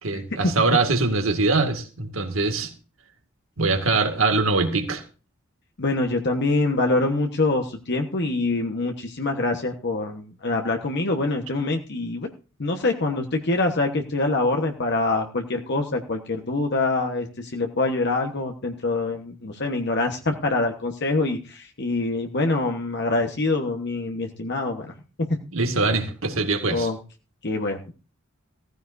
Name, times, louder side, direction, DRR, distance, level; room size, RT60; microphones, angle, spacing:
voice 1, 0.0-2.7 3.6-5.0 25.5-26.9, right 3 dB, 80° right, 5 dB, 2.2 m, -23 dB
voice 2, 5.8-12.3 12.6-24.9 25.2-25.3 26.7-27.0 27.4-27.9, left 2 dB, 55° left, 3 dB, 1.3 m, -25 dB
16.0 x 14.5 x 2.7 m, 0.34 s
head